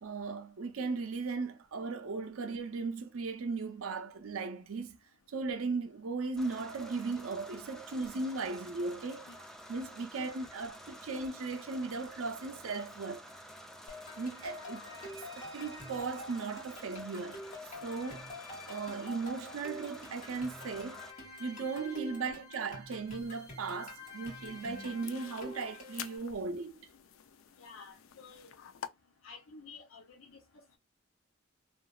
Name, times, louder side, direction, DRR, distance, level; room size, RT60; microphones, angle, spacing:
voice 1, 0.0-5.0 5.3-9.3 9.7-13.2 14.2-17.4 17.8-18.3 18.7-21.0 21.4-26.8, right 4 dB, 85° right, 0.5 m, -37 dB
sound 1, 6.4-21.1, equal, ahead, 0.4 m, -50 dB
sound 2, 13.9-26.2, left 2 dB, 40° left, 1.6 m, -47 dB
sound 3, 23.1-28.9, left 9 dB, 70° left, 0.4 m, -50 dB
voice 2, 27.6-28.5 29.2-30.4, left 4 dB, 90° left, 0.8 m, -51 dB
2.9 x 2.4 x 2.3 m
head